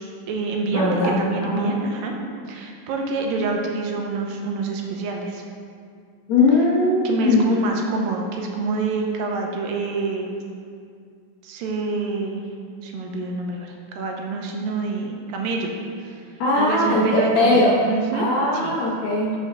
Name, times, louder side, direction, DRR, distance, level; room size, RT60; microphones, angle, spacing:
voice 1, 0.0-2.2 2.5-5.4 7.0-10.3 11.4-12.4 12.8-15.7 16.0-16.2 16.6-18.7, right 3 dB, 80° right, 1 dB, 2.5 m, -27 dB
voice 2, 0.7-1.7 6.3-7.6 16.4-17.8 18.1-19.3, left 2 dB, 65° left, -5 dB, 2.0 m, -20 dB
6.3 x 5.6 x 6.1 m, 2.2 s
omnidirectional pair, 4.1 m